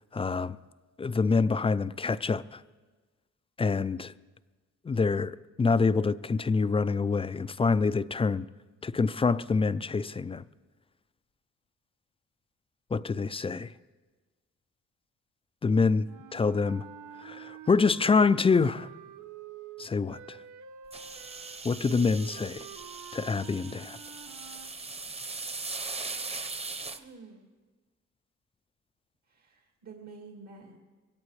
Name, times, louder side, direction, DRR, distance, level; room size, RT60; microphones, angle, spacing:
voice 1, 0.1-0.6 1.0-2.6 3.6-4.1 4.8-8.5 8.8-10.4 12.9-13.7 15.6-16.0 16.3-16.8 17.2-18.9 19.8-20.4 21.6-22.7 23.1-24.0, left 4 dB, 20° left, 0.4 m, -26 dB
sound 1, 16.0-24.7, right 9 dB, 80° right, 0.9 m, -47 dB
sound 2, 20.9-27.0, right 3 dB, 20° right, 0.9 m, -39 dB
voice 2, 27.0-27.5 29.3-30.8, right 4 dB, 65° right, 2.1 m, -49 dB
22.0 x 17.0 x 3.2 m
cardioid pair, 90°, 30 cm